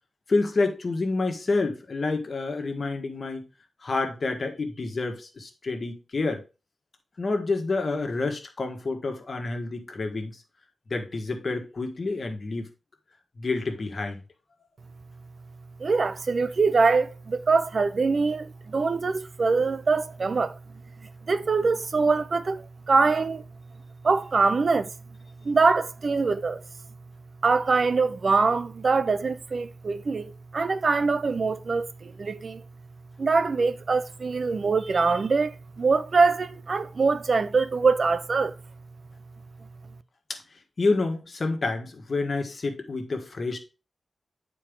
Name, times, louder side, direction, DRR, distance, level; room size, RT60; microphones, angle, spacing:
voice 1, 0.3-3.4 3.8-6.4 7.2-10.4 10.9-12.7 13.4-14.2 40.3-40.4 40.8-43.6, left 3 dB, 45° left, 1.6 m, -28 dB
voice 2, 15.8-20.6 21.3-23.4 24.0-24.9 25.4-26.6 27.4-32.6 33.2-38.5, right 4 dB, 50° right, 0.5 m, -23 dB
8.8 x 4.6 x 3.7 m
wide cardioid pair, 105°, 0 cm